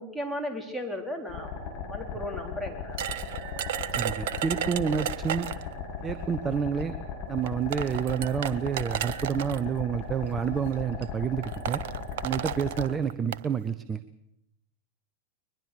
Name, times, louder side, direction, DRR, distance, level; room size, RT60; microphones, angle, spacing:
voice 1, 0.0-3.0, left 1 dB, ahead, 3 dB, 3.8 m, -35 dB
sound 1, 1.3-12.9, left 6 dB, 35° left, 7.2 m, -37 dB
sound 2, 3.0-5.7 6.8-6.9 7.5-9.6 10.5-10.7 11.0-11.1 11.4-13.5, right 10 dB, 55° right, 0.9 m, -33 dB
voice 2, 3.9-5.5 6.0-6.9 7.3-11.8 12.2-14.0, right 7 dB, 20° right, 13 dB, 0.9 m, -29 dB
22.5 x 21.5 x 6.7 m, 0.80 s
figure-of-eight pair, 90°, 0 cm